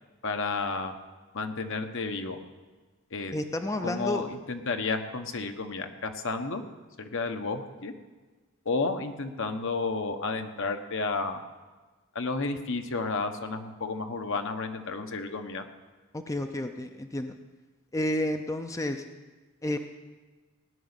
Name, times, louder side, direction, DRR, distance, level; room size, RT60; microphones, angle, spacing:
voice 1, 0.2-0.9 1.3-2.4 3.1-3.3 3.8-6.6 7.0-7.9 8.6-11.4 12.1-15.6, left 3 dB, 60° left, 7 dB, 1.1 m, -31 dB
voice 2, 3.3-4.2 16.1-17.3 17.9-19.0 19.6-19.8, left 1 dB, 15° left, 7 dB, 0.5 m, -30 dB
17.5 x 6.3 x 9.8 m, 1.3 s
head